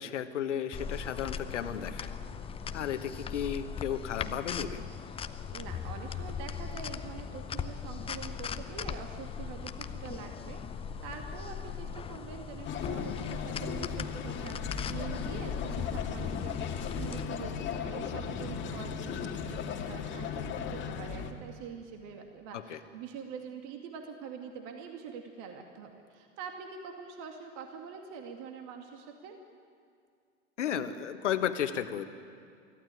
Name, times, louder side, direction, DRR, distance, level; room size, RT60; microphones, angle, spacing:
voice 1, 0.0-2.1 2.7-4.8 22.5-22.8 30.6-32.0, left 9 dB, 65° left, 9 dB, 1.5 m, -33 dB
sound 1, 0.7-17.2, left 6 dB, 15° left, 0.7 m, -39 dB
voice 2, 5.5-29.4, right 6 dB, 45° right, 4 dB, 2.3 m, -45 dB
sound 2, 12.6-21.3, left 6 dB, 30° left, 1.9 m, -37 dB
24.5 x 15.0 x 9.2 m, 2.3 s
figure-of-eight pair, 90°, 38 cm